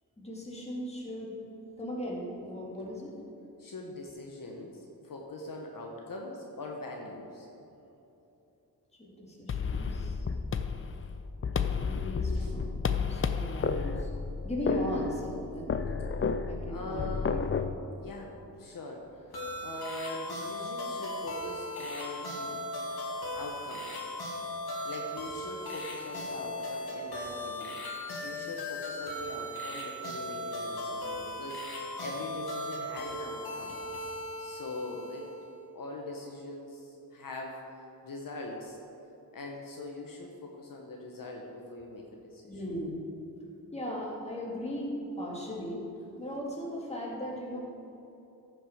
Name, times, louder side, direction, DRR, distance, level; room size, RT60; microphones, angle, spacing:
voice 1, 0.2-1.3 1.8-3.1 9.0-10.2 11.5-14.1 14.4-15.8 16.5-17.6 42.5-43.0 43.7-45.8 46.2-47.6, equal, 15° left, -4 dB, 2.2 m, -37 dB
voice 2, 3.6-7.5 12.3-12.5 16.7-17.6 17.9-19.3 19.6-22.6 23.3-24.2 24.8-33.8 34.4-35.3 35.7-37.6 38.0-38.8 39.3-42.5, left 2 dB, 60° left, 0 dB, 1.1 m, -42 dB
sound 1, 9.5-17.8, left 5 dB, 35° left, 0.4 m, -32 dB
sound 2, 19.3-35.5, left 1 dB, 75° left, 2.1 m, -38 dB
15.0 x 6.1 x 5.0 m, 3.0 s
wide cardioid pair, 145°, 37 cm